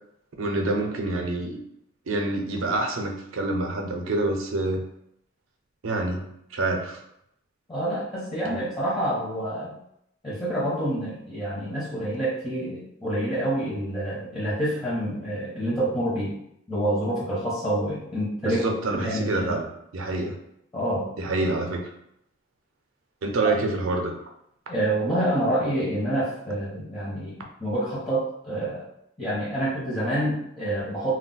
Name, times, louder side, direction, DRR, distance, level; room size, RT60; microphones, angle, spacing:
voice 1, 0.4-1.6 2.1-4.8 5.8-6.2 6.5-7.0 8.5-8.6 18.4-19.7 19.9-20.4 21.2-21.9 23.2-24.1, right 2 dB, 75° right, 2 dB, 0.5 m, -27 dB
voice 2, 7.7-9.8 10.2-16.4 16.7-19.6 20.7-21.1 24.7-28.8 29.2-31.2, right 1 dB, 20° left, -9 dB, 0.8 m, -27 dB
2.3 x 2.0 x 3.8 m, 0.75 s
head